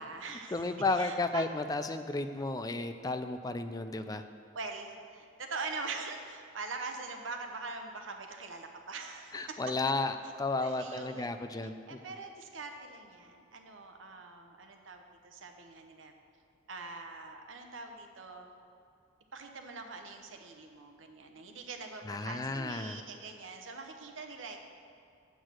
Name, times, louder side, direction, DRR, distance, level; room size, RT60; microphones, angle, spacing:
voice 1, 0.0-1.5 4.5-9.6 10.6-11.6 11.9-16.1 16.7-18.5 19.3-24.6, right 3 dB, 75° right, 4 dB, 0.9 m, -43 dB
voice 2, 0.5-4.2 9.3-12.0 22.0-23.0, left 2 dB, 20° left, 9 dB, 0.4 m, -33 dB
8.3 x 6.3 x 6.2 m, 2.4 s
head